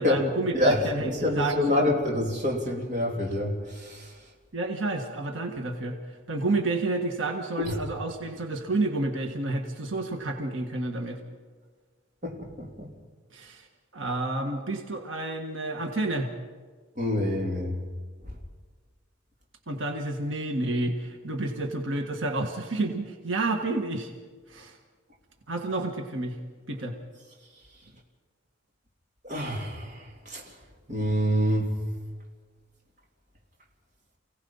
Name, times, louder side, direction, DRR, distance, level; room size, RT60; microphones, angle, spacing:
voice 1, 0.0-1.9 4.5-6.0 6.3-11.2 13.3-13.7 13.9-16.3 19.7-24.1 24.5-24.8 25.5-26.4 26.7-27.0, right 2 dB, 90° right, 3 dB, 1.7 m, -30 dB
voice 2, 0.5-4.1 7.6-7.8 12.2-12.9 17.0-17.8 29.2-30.5 30.9-31.8, left 1 dB, 40° right, -1 dB, 3.3 m, -27 dB
28.5 x 17.5 x 5.6 m, 1.5 s
head